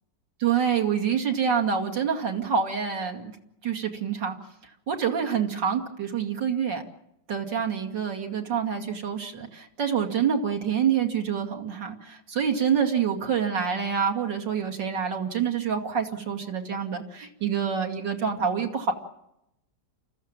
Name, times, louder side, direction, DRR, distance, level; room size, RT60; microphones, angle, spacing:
voice 1, 0.4-3.3 3.6-4.3 4.9-6.8 7.3-18.9, right 7 dB, 90° right, 2 dB, 3.2 m, -27 dB
29.0 x 14.5 x 8.8 m, 0.81 s
omnidirectional pair, 1.9 m